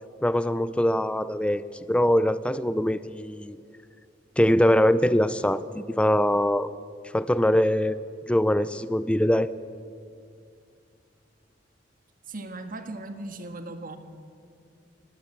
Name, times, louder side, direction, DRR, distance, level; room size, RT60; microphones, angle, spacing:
voice 1, 0.2-1.6 1.9-3.6 4.4-6.7 7.1-8.0 8.3-9.5, left 1 dB, 5° left, 15 dB, 0.4 m, -22 dB
voice 2, 12.3-14.0, right 2 dB, 50° right, 8 dB, 1.7 m, -37 dB
19.5 x 16.5 x 8.8 m, 2.3 s
head